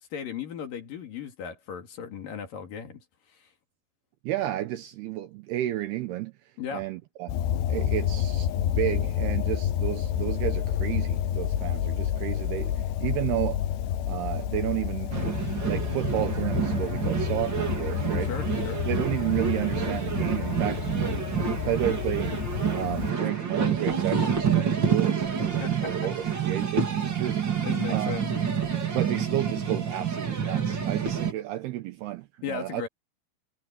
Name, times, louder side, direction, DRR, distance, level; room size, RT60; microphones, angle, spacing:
voice 1, 0.1-3.0 3.4-3.5 6.6-6.8 18.3-18.8 25.6-25.9 27.6-28.3 32.4-32.9, left 7 dB, 50° left, 3.4 m, -36 dB
voice 2, 4.2-6.3 6.7-7.3 7.7-13.6 14.1-15.2 15.6-18.3 18.9-22.4 22.7-27.4 27.9-28.1 28.9-32.8, right 14 dB, 90° right, 2.2 m, -32 dB
sound 1, 7.3-23.1, left 10 dB, 70° left, 2.7 m, -29 dB
sound 2, 15.1-31.3, right 7 dB, 30° right, 2.6 m, -28 dB
omnidirectional pair, 5.9 m